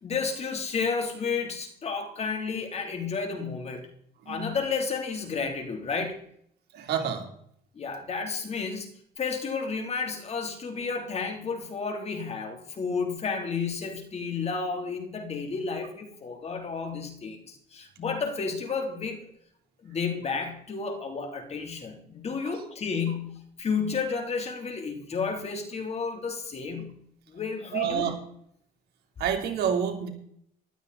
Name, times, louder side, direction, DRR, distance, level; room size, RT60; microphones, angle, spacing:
voice 1, 0.0-3.8 4.3-6.2 7.7-8.9 9.2-19.3 19.8-26.9 27.3-28.1, left 5 dB, 40° left, 5 dB, 3.2 m, -31 dB
voice 2, 4.2-4.5 6.7-7.2 27.7-28.2 29.2-30.1, right 8 dB, 70° right, 2 dB, 3.2 m, -28 dB
14.5 x 12.0 x 4.1 m, 0.67 s
cardioid pair, 110°, 17 cm